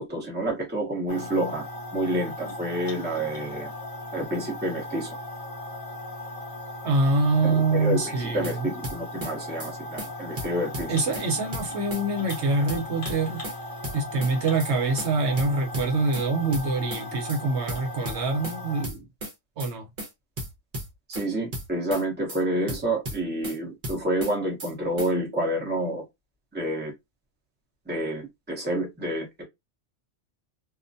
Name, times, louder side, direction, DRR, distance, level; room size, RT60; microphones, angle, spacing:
voice 1, 0.0-1.6 1.9-3.7 4.1-5.2 7.4-11.0 21.1-26.0 26.5-26.9 27.9-29.4, right 1 dB, 10° right, 0.7 m, -29 dB
sound 1, 1.1-18.9, left 1 dB, 30° left, 0.9 m, -38 dB
voice 2, 6.8-8.7 10.9-13.4 13.9-19.0 19.6-19.9, right 3 dB, 70° right, 0.9 m, -25 dB
sound 2, 8.2-8.6 8.8-9.3 9.6-9.7 10.0-10.1 10.4-11.3 11.5-12.0 12.3-12.4 12.7-13.6 13.8-14.3 14.6-14.7 15.0-15.1 15.4-16.2 16.5-17.0 17.3-17.4 17.7-18.6 18.8-19.3 19.6-19.7 20.0-20.1 20.4-21.2 21.5-22.0 22.3-22.4 22.7-23.6 23.8-24.3 24.6-24.7 25.0-25.1, equal, 45° right, 1.0 m, -35 dB
2.5 x 2.1 x 2.5 m
omnidirectional pair, 1.3 m